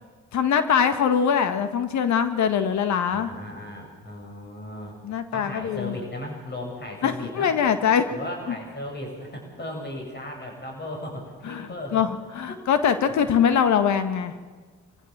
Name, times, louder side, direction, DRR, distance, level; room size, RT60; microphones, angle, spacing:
voice 1, 0.3-3.3 5.0-5.9 7.0-8.1 11.4-14.3, left 7 dB, 65° left, 9 dB, 1.7 m, -23 dB
voice 2, 3.1-7.5 8.1-12.0 12.5-12.6 13.2-13.3, left 1 dB, 35° left, 1 dB, 7.8 m, -36 dB
24.0 x 15.0 x 7.5 m, 1.5 s
supercardioid pair, 60°, 30 cm